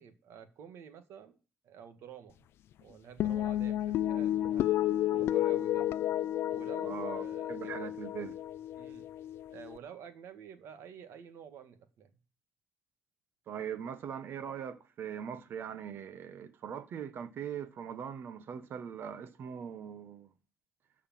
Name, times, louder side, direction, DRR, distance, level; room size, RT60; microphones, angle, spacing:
voice 1, 0.0-1.4 1.6-2.5 2.8-4.7 5.1-5.9 6.5-7.9 8.8-9.1 9.5-12.1, right 7 dB, 70° right, 1.9 m, -50 dB
sound 1, 3.2-9.8, left 12 dB, 65° left, 0.6 m, -32 dB
voice 2, 6.8-8.3 13.5-20.3, right 8 dB, 55° right, 1.3 m, -41 dB
13.5 x 5.0 x 7.3 m
cardioid pair, 135°, 5 cm